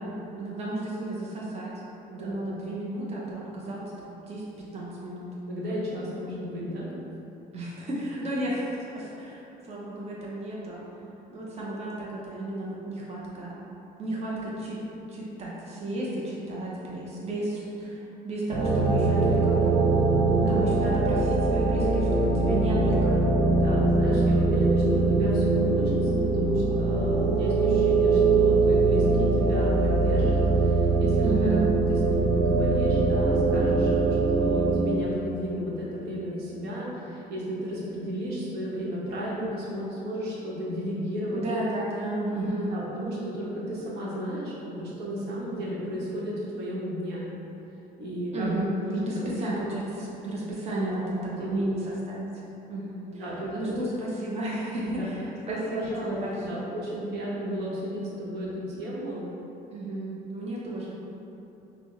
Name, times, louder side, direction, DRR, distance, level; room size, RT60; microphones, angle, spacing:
voice 1, 0.0-1.7 2.1-4.4 4.7-5.3 7.5-10.8 11.3-13.6 14.0-14.8 15.1-18.0 18.2-19.8 20.3-23.3 24.2-24.4 31.2-31.7 41.3-42.7 48.3-52.3 52.7-53.2 53.6-56.7 59.7-60.9, right 1 dB, 40° right, -5 dB, 0.7 m, -33 dB
voice 2, 5.5-6.9 20.3-20.7 23.5-31.5 31.9-41.4 42.6-47.2 48.0-48.5 48.7-49.4 50.8-51.0 51.3-51.7 53.2-53.8 54.8-55.1 55.5-59.3, equal, 80° right, -6 dB, 1.0 m, -34 dB
sound 1, 18.5-34.8, right 3 dB, 60° right, 1.4 m, -22 dB
5.8 x 2.1 x 3.1 m, 3.0 s
cardioid pair, 110°, 17 cm